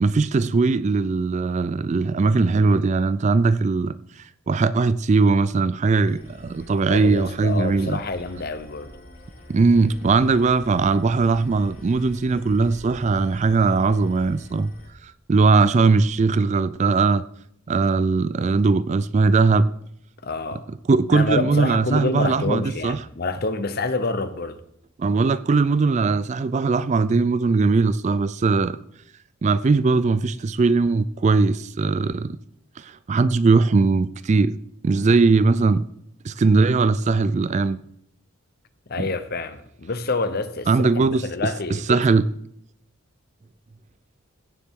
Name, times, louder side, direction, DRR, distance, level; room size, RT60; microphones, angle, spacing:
voice 1, 0.0-4.0 4.5-8.0 9.5-14.7 15.0-17.2 17.7-19.7 20.9-23.0 25.0-28.8 29.4-32.4 32.8-34.6 34.8-35.9 36.2-37.8 39.0-39.1 40.7-42.3, right 4 dB, 35° right, 0.3 m, -20 dB
sound 1, 6.0-14.9, equal, 85° left, 3.5 m, -45 dB
voice 2, 6.9-8.9 20.2-20.6 21.1-24.6 38.9-42.0, left 3 dB, 45° left, 0.8 m, -27 dB
16.0 x 7.2 x 3.7 m
head